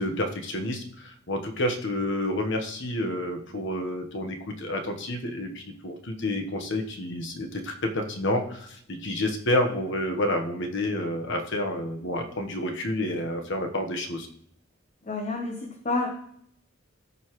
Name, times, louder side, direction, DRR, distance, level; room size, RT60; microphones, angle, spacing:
voice 1, 0.0-14.3, left 1 dB, 60° left, 4 dB, 1.3 m, -29 dB
voice 2, 15.1-16.1, left 3 dB, 35° left, 1 dB, 1.1 m, -29 dB
14.5 x 5.5 x 3.1 m, 0.67 s
head